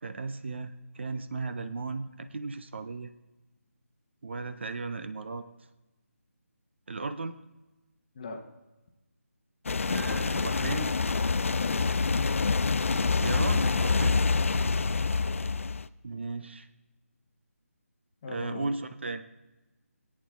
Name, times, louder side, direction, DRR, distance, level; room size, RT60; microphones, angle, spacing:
voice 1, 0.0-3.1 4.2-5.4 6.9-7.4 9.9-10.9 13.2-14.2 16.0-16.7 18.3-19.2, right 3 dB, 45° right, 10 dB, 0.5 m, -35 dB
sound 1, 9.7-15.8, left 4 dB, 60° left, 0.4 m, -26 dB
voice 2, 11.6-12.5 14.5-14.8 18.2-18.7, left 4 dB, 30° left, 3 dB, 1.0 m, -40 dB
19.0 x 8.6 x 2.3 m, 1.1 s
figure-of-eight pair, 155°, 8 cm